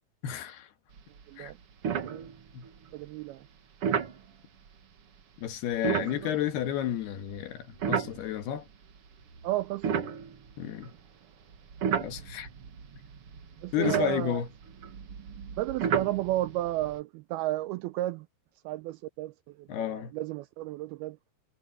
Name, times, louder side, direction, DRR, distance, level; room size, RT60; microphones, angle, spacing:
voice 1, 0.2-0.7 1.4-1.5 2.5-2.7 5.4-8.6 10.6-10.9 12.0-12.5 13.7-14.5 19.7-20.1, left 10 dB, 75° left, 3.4 m, -32 dB
sound 1, 1.0-1.2 1.5-1.6 1.8-2.7 3.8-4.2 5.7-8.6 9.2-11.0 11.5-17.0, right 7 dB, 55° right, 1.6 m, -33 dB
voice 2, 2.9-3.4 5.9-6.3 9.4-9.9 13.6-14.4 15.6-18.3 18.7-19.3 19.6-21.2, right 15 dB, 85° right, 2.3 m, -33 dB
omnidirectional pair, 4.8 m